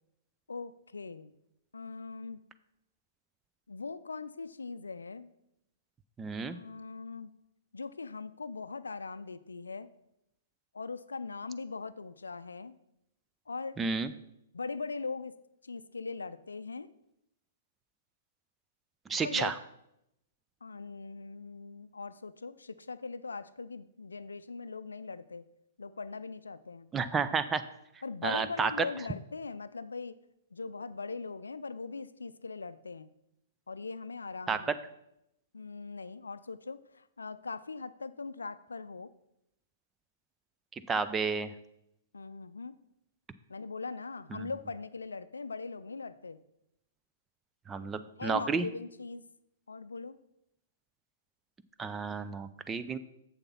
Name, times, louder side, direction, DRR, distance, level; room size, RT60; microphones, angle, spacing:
voice 1, 0.5-1.3 1.7-2.4 3.7-5.3 6.4-7.3 7.7-9.9 10.7-12.7 13.5-13.8 14.5-15.3 15.6-16.9 19.2-19.5 20.6-25.5 25.8-26.9 28.0-30.2 30.5-33.1 33.7-34.7 35.5-39.1 42.1-42.8 43.5-46.4 48.2-49.2 49.7-50.2 52.9-53.0, left 4 dB, 80° left, 14 dB, 0.4 m, -40 dB
voice 2, 6.2-6.6 13.8-14.1 19.1-19.5 26.9-27.6 28.2-28.9 34.5-34.8 40.9-41.5 44.3-44.5 47.7-48.7 51.8-53.0, right 5 dB, 15° right, 11 dB, 0.5 m, -31 dB
7.3 x 6.8 x 5.4 m, 0.82 s
figure-of-eight pair, 115°, 0 cm